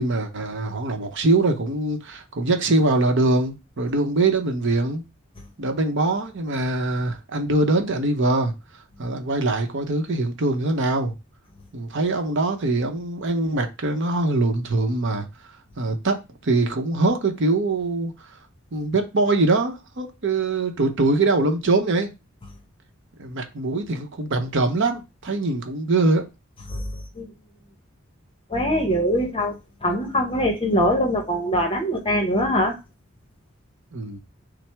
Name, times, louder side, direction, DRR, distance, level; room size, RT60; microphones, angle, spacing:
voice 1, 0.0-5.0 5.6-8.5 9.0-11.1 11.7-15.2 15.8-16.2 16.4-18.1 18.7-22.1 23.2-26.3 33.9-34.2, right 2 dB, 60° right, 0.8 m, -23 dB
voice 2, 26.7-27.3 28.5-32.8, equal, 25° left, 0.8 m, -23 dB
5.9 x 2.0 x 3.3 m
head